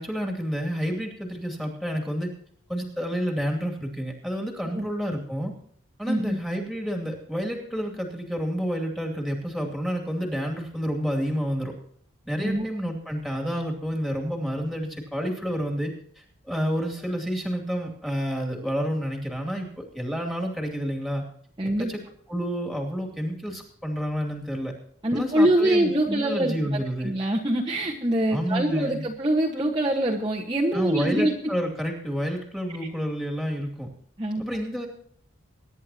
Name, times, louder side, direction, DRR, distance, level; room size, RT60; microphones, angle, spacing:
voice 1, 0.0-2.3 2.7-5.5 6.0-11.7 12.3-15.9 16.5-21.2 21.8-22.0 22.3-24.7 25.1-27.1 28.3-29.0 30.7-33.9 34.4-34.9, equal, ahead, 1 dB, 2.6 m, -29 dB
voice 2, 6.1-6.4 12.4-12.7 21.6-21.9 25.0-31.3 34.2-34.4, right 1 dB, 20° right, -3 dB, 1.3 m, -24 dB
23.0 x 10.5 x 2.9 m, 0.62 s
head